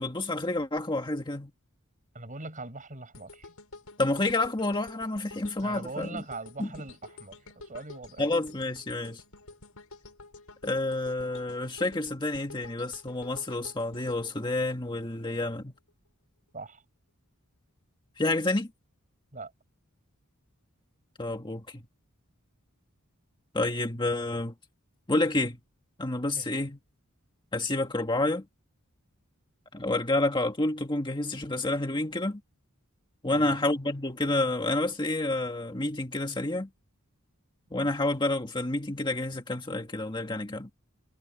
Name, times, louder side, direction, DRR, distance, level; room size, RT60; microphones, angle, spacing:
voice 1, 0.0-1.5 4.0-6.2 6.6-6.7 8.2-9.2 10.6-15.7 18.2-18.7 21.2-21.8 23.5-24.5 25.1-25.6 26.0-26.8 27.5-28.4 29.7-32.4 33.2-36.7 37.7-40.7, left 2 dB, 20° left, 1.7 m, -29 dB
voice 2, 2.1-3.5 5.6-8.2 16.5-16.8 19.3-19.5 26.4-26.5 33.3-33.6, right 3 dB, 35° right, 7.5 m, -41 dB
sound 1, 3.1-15.3 15.7-15.9, left 3 dB, 90° left, 6.1 m, -50 dB
head